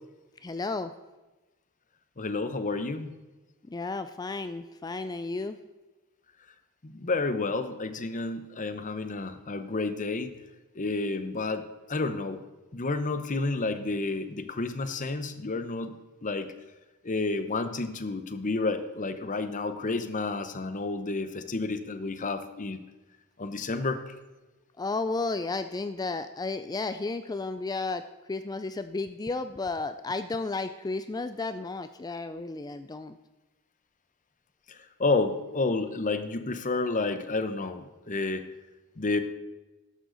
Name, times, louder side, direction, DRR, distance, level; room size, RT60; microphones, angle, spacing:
voice 1, 0.4-0.9 3.7-5.6 24.8-28.0 28.3-33.2, left 3 dB, 15° left, 11 dB, 0.3 m, -33 dB
voice 2, 2.2-3.1 6.8-10.3 10.8-12.4 12.7-16.5 17.0-22.8 23.4-24.1 34.7-38.4 39.0-39.2, left 3 dB, 35° left, 10 dB, 0.8 m, -30 dB
13.0 x 11.5 x 3.9 m, 1.1 s
head